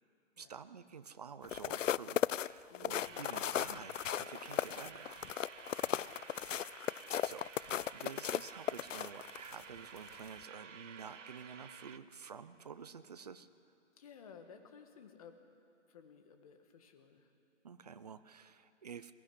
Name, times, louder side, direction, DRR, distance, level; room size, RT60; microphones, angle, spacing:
voice 1, 0.4-5.1 7.2-13.5 17.6-19.1, right 6 dB, 30° right, 13 dB, 0.7 m, -50 dB
sound 1, 1.4-9.6 10.1-10.3, left 10 dB, 80° left, 0.6 m, -36 dB
voice 2, 2.7-3.6 5.7-6.7 13.9-15.4 15.9-17.3, left 6 dB, 30° left, 6 dB, 1.6 m, -57 dB
sound 2, 3.0-12.0, right 6 dB, 70° right, 1.3 m, -53 dB
22.0 x 18.5 x 9.9 m, 2.7 s
hypercardioid pair, 165°, 38 cm